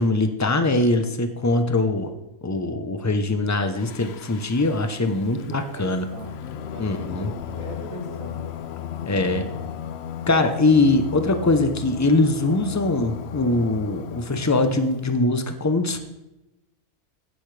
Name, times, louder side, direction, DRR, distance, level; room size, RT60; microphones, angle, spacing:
voice 1, 0.0-2.1 2.4-6.1 6.8-7.3 9.1-9.4 10.3-16.0, left 2 dB, 20° left, 8 dB, 0.4 m, -22 dB
Singing, 3.7-15.1, left 10 dB, 65° left, 0.7 m, -35 dB
voice 2, 5.3-8.5 9.2-9.5, right 1 dB, 65° right, -2 dB, 2.9 m, -39 dB
15.5 x 8.3 x 3.3 m, 0.96 s
omnidirectional pair, 1.5 m